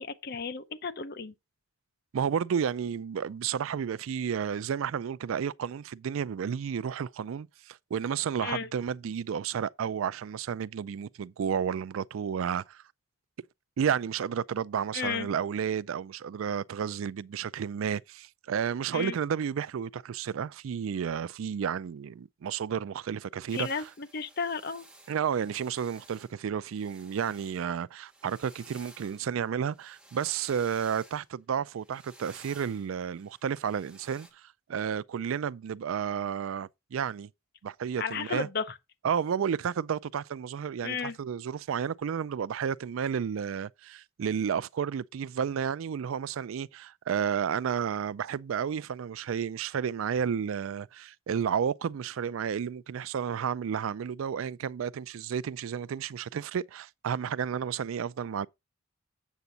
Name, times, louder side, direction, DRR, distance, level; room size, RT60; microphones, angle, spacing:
voice 1, 0.0-1.3 8.4-8.7 14.9-15.3 18.9-19.2 23.5-24.9 38.0-38.7 40.8-41.2, left 5 dB, 50° left, 0.7 m, -33 dB
voice 2, 2.1-12.8 13.8-23.8 25.1-34.4 34.7-37.3 37.6-38.5 39.0-58.5, right 7 dB, 90° right, 0.4 m, -32 dB
sound 1, 23.5-27.6 28.0-31.3 31.8-34.3, right 1 dB, 5° right, 1.7 m, -55 dB
8.2 x 7.0 x 3.9 m
head